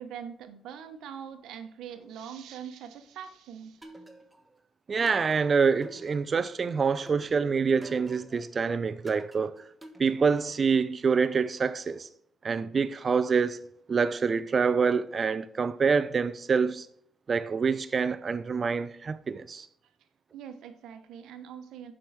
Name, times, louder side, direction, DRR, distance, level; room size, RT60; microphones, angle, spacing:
voice 1, 0.0-3.9 20.3-21.9, right 8 dB, 80° right, 1.1 m, -42 dB
sound 1, 3.8-4.6 5.1-6.5 7.1-8.5 9.1-10.5, right 1 dB, 15° right, 1.3 m, -50 dB
voice 2, 4.9-9.6 10.0-12.1 12.4-13.6 13.9-16.9 17.3-19.7, right 5 dB, 40° right, 0.5 m, -26 dB
7.6 x 6.1 x 4.9 m
cardioid pair, 90°, 0 cm